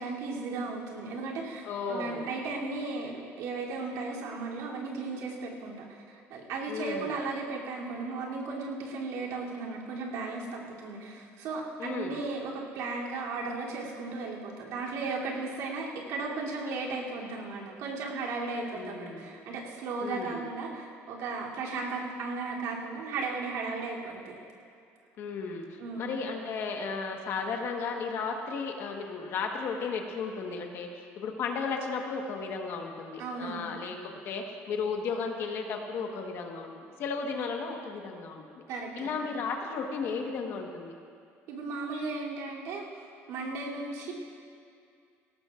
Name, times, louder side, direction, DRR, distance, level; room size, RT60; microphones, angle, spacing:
voice 1, 0.0-24.3 25.8-26.1 33.2-33.7 38.7-39.1 41.5-44.1, right 3 dB, 75° right, -4 dB, 3.0 m, -36 dB
voice 2, 1.6-2.2 6.7-7.1 11.8-12.1 18.7-19.3 20.0-20.4 25.2-38.6 39.0-40.9, left 5 dB, 50° left, 2 dB, 1.3 m, -34 dB
19.5 x 17.5 x 2.5 m, 2.4 s
cardioid pair, 170°, 5 cm